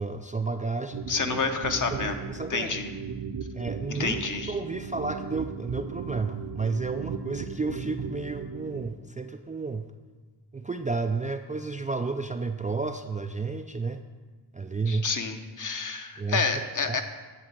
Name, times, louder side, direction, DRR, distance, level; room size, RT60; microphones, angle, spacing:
voice 1, 0.0-1.4 1.9-2.8 3.5-4.2 4.5-9.9 10.5-14.0 14.5-15.1 16.2-17.0, right 4 dB, 20° right, 6 dB, 0.3 m, -32 dB
sound 1, 0.9-8.9, right 5 dB, 60° right, 0.7 m, -36 dB
voice 2, 1.1-2.2 2.5-2.9 3.9-4.5 14.9-17.0, left 4 dB, 45° left, 6 dB, 0.9 m, -29 dB
10.5 x 3.9 x 7.4 m, 1.3 s
wide cardioid pair, 80°, 42 cm